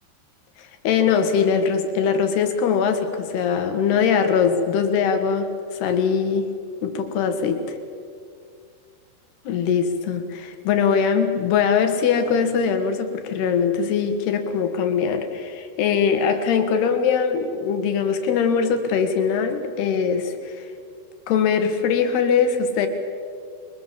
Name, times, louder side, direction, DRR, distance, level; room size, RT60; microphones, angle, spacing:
voice 1, 0.6-6.5 6.8-7.8 9.5-20.7 21.3-22.9, left 6 dB, 75° left, 7 dB, 3.9 m, -21 dB
28.0 x 23.0 x 7.7 m, 2.2 s
omnidirectional pair, 4.7 m